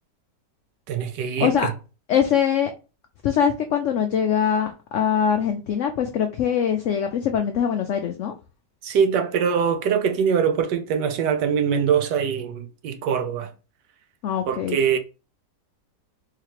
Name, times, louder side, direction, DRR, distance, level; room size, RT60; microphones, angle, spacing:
voice 1, 0.9-1.7 8.8-13.5 14.4-15.0, right 7 dB, 85° right, 1.3 m, -23 dB
voice 2, 2.1-2.7 3.2-8.3 14.2-14.8, left 8 dB, 80° left, 0.6 m, -22 dB
4.1 x 2.8 x 3.0 m
omnidirectional pair, 1.8 m